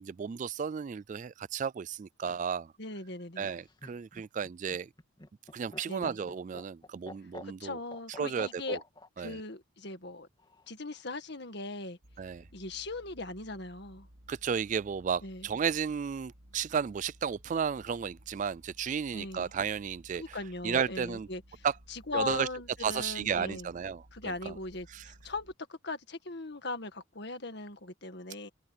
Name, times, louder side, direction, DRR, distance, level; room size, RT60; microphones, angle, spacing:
voice 1, 0.0-2.7 3.4-4.9 5.5-7.8 8.2-8.8 9.2-9.4 12.2-12.4 14.3-20.4 20.6-21.3 21.6-21.8 22.1-22.5 22.8-24.1 24.5-24.6 24.9-25.1, right 7 dB, 40° right, 0.3 m, -33 dB
voice 2, 2.8-3.5 5.9-6.2 7.4-8.8 9.2-10.3 10.7-12.0 12.5-14.1 15.2-15.5 19.1-19.5 20.1-23.7 24.1-28.5, left 2 dB, 55° left, 1.9 m, -39 dB
Laughter, 3.4-9.1 10.4-11.0, left 1 dB, 25° left, 3.0 m, -49 dB
sound 1, 12.0-25.5, equal, 85° right, 3.1 m, -57 dB
open air
head